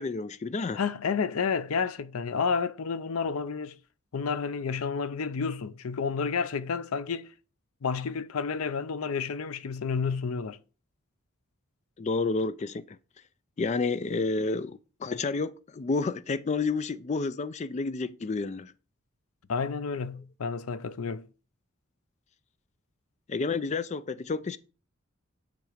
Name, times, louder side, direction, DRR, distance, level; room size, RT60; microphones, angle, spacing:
voice 1, 0.0-0.8 12.0-13.0 13.6-18.7 23.3-24.6, left 4 dB, 35° left, 0.4 m, -30 dB
voice 2, 0.7-3.8 4.1-7.3 7.8-10.6 19.5-21.3, left 5 dB, 90° left, 0.6 m, -30 dB
9.7 x 3.8 x 5.0 m
head